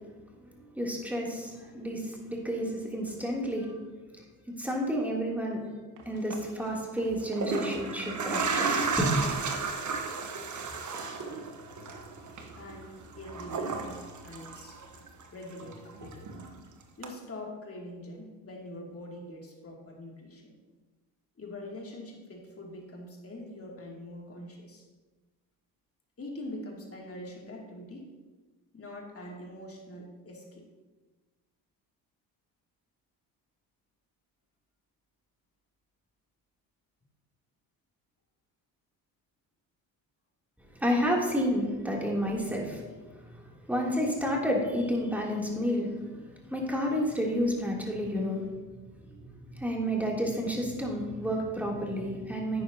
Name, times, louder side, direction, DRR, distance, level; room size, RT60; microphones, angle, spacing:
voice 1, 0.7-3.7 4.6-5.6 6.0-9.3 9.6-9.7 40.8-42.8 43.1-43.2 43.7-48.4 49.1-52.6, equal, 5° right, -2 dB, 3.0 m, -30 dB
sound 1, 6.0-11.1, right 4 dB, 70° right, 1.7 m, -48 dB
sound 2, 6.2-6.4 7.2-15.2 15.5-16.6 17.0-17.1, right 4 dB, 40° right, 1.4 m, -33 dB
voice 2, 12.6-14.8 15.3-16.3 17.0-20.6 21.4-24.8 26.2-28.1 28.7-30.7, left 1 dB, 30° left, -1 dB, 2.7 m, -44 dB
11.0 x 9.3 x 2.9 m, 1.3 s
hypercardioid pair, 55°, 44 cm